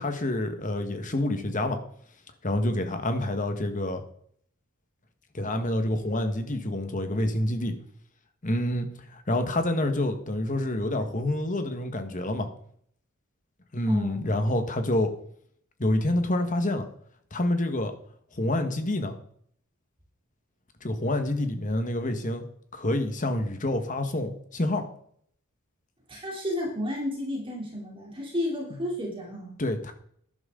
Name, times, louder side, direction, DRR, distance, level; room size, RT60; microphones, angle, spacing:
voice 1, 0.0-1.8 2.4-4.0 5.3-7.7 8.4-12.5 13.7-15.1 15.8-16.9 17.3-17.9 18.4-19.1 20.8-22.5 22.7-24.8 29.6-29.9, left 1 dB, 35° left, 7 dB, 1.5 m, -27 dB
voice 2, 13.9-14.3 26.1-29.5, left 1 dB, 25° right, -2 dB, 3.3 m, -32 dB
13.0 x 11.0 x 3.9 m, 0.63 s
head